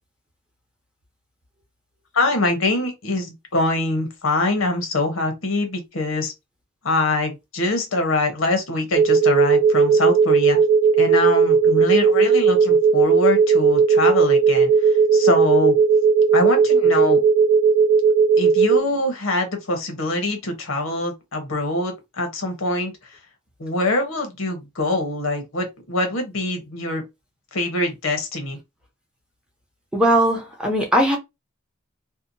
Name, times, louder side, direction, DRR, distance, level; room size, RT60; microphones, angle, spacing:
voice 1, 2.1-6.3 6.8-10.6 11.0-15.7 16.3-17.2 18.4-22.9 23.6-27.0 27.5-28.6, left 2 dB, 80° left, 0.9 m, -24 dB
sound 1, 8.9-18.8, right 5 dB, 45° right, 0.4 m, -16 dB
voice 2, 29.9-31.2, right 1 dB, 5° right, 0.7 m, -19 dB
2.7 x 2.1 x 2.6 m
head